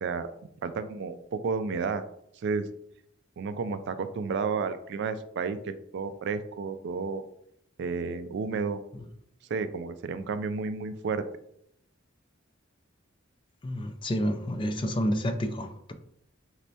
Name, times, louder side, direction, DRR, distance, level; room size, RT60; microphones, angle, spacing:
voice 1, 0.6-2.0 2.4-2.7 3.4-7.2 7.8-8.8 9.5-11.3, right 5 dB, 60° right, 11 dB, 0.3 m, -31 dB
voice 2, 13.6-15.9, equal, 25° left, 7 dB, 0.4 m, -29 dB
4.4 x 3.1 x 2.7 m, 0.73 s
head